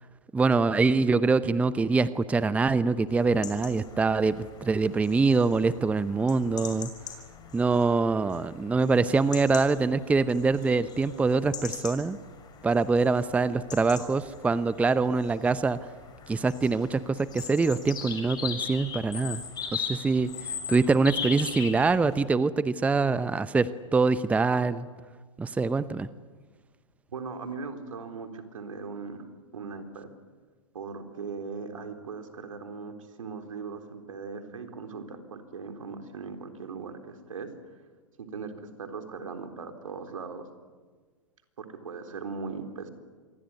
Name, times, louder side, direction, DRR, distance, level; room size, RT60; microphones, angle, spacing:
voice 1, 0.3-6.9 7.5-12.2 12.6-15.8 16.3-19.4 19.7-20.3 20.7-24.9 25.4-26.1, right 4 dB, 10° right, 15 dB, 0.7 m, -24 dB
sound 1, 3.1-22.2, left 6 dB, 25° left, 5.8 m, -40 dB
voice 2, 27.1-29.3 29.5-30.1 30.7-37.5 38.2-38.5 38.8-40.5 41.6-42.9, right 5 dB, 75° right, 5 dB, 4.0 m, -39 dB
27.0 x 22.0 x 9.8 m, 1.5 s
hypercardioid pair, 115°, 17 cm